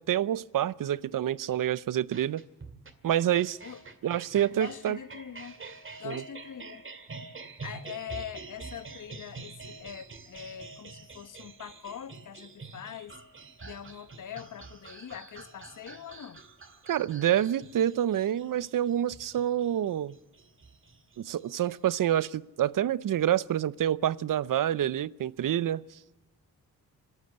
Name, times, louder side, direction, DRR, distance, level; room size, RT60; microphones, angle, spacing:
voice 1, 0.0-2.4 3.0-3.6 4.0-5.0 6.0-6.2 16.9-20.1 21.2-25.8, right 11 dB, 65° right, 0.7 m, -27 dB
sound 1, 2.1-21.9, right 4 dB, 35° right, 2.2 m, -47 dB
voice 2, 4.5-5.6 6.0-6.8 7.6-13.2 13.6-16.4, left 9 dB, 60° left, 1.1 m, -43 dB
25.0 x 13.0 x 8.6 m
cardioid pair, 105°, 35 cm